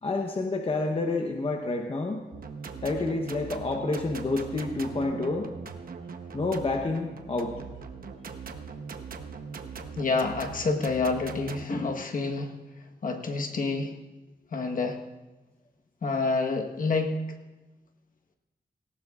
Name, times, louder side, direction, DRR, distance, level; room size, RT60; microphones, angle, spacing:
voice 1, 0.0-2.3 2.8-5.5 6.3-7.6, left 2 dB, 35° left, 3 dB, 0.9 m, -29 dB
sound 1, 2.3-11.7, right 5 dB, 60° right, 0.9 m, -40 dB
voice 2, 9.9-12.5 13.0-13.9 14.5-15.0 16.0-17.2, left 3 dB, 55° left, 3 dB, 1.3 m, -28 dB
18.5 x 17.5 x 2.4 m, 1.1 s
wide cardioid pair, 145°, 17 cm